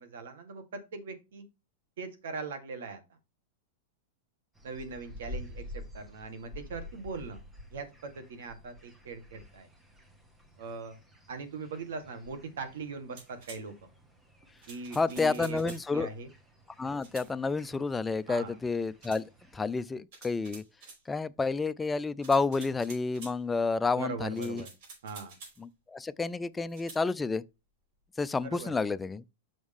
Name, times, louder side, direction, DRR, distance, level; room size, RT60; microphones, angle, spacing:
voice 1, 0.0-1.4 2.0-3.0 4.6-7.4 7.7-9.7 10.6-11.0 11.3-13.7 14.7-16.3 18.3-18.6 23.9-24.7 25.0-25.4 28.4-28.7, right 4 dB, 80° right, 2.0 m, -40 dB
sound 1, 4.5-19.7, left 1 dB, 10° right, 1.1 m, -50 dB
sound 2, 13.2-13.6 14.6-15.9 17.0-17.3 19.0-19.2 20.1-21.0 22.2-23.4 24.3-25.6 26.7-27.0, right 4 dB, 60° right, 5.2 m, -49 dB
voice 2, 14.9-16.1 16.8-19.2 19.5-20.6 21.1-24.6 25.6-27.4 28.2-29.2, left 4 dB, 10° left, 0.3 m, -30 dB
6.3 x 6.1 x 3.6 m
supercardioid pair, 155°, 0 cm